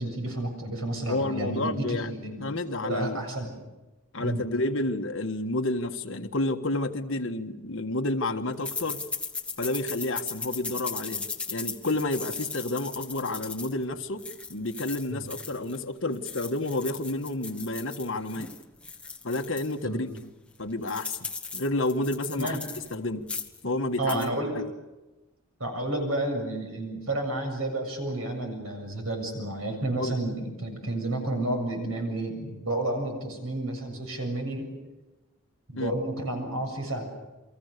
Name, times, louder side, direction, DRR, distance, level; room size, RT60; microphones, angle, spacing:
voice 1, 0.0-2.6 2.8-3.5 4.2-4.5 15.1-15.2 19.8-20.2 22.4-22.6 24.0-24.6 25.6-34.7 35.7-37.1, right 1 dB, 75° right, 7.4 m, -31 dB
voice 2, 1.1-2.1 2.4-3.2 4.1-9.0 9.6-14.2 14.5-18.5 19.2-20.1 20.6-21.2 21.5-22.6 22.9-23.3 23.6-24.3 24.5-24.6 30.0-30.2 35.8-35.9, left 2 dB, 60° left, 1.6 m, -30 dB
sound 1, 8.6-15.8 16.1-19.7 20.2-20.3 20.5-22.9 23.2-23.6 23.9-24.3, left 4 dB, 5° left, 1.3 m, -37 dB
30.0 x 23.5 x 6.8 m
head